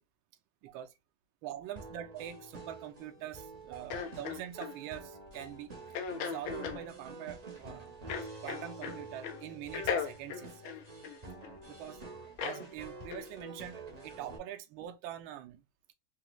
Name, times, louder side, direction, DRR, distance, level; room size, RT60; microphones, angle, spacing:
voice 1, 0.6-1.0 1.4-5.7 6.3-8.0 8.4-10.7 11.7-12.0 12.4-15.6, right 11 dB, 75° right, 1.3 m, -44 dB
sound 1, 1.8-14.4, right 2 dB, 40° right, 0.5 m, -48 dB
sound 2, 3.9-4.7 5.9-6.8 8.1-9.0 9.2-9.4 9.7-11.5 12.4-12.6 13.1-13.3, left 7 dB, 85° left, 1.5 m, -37 dB
4.2 x 3.0 x 2.3 m
omnidirectional pair, 2.3 m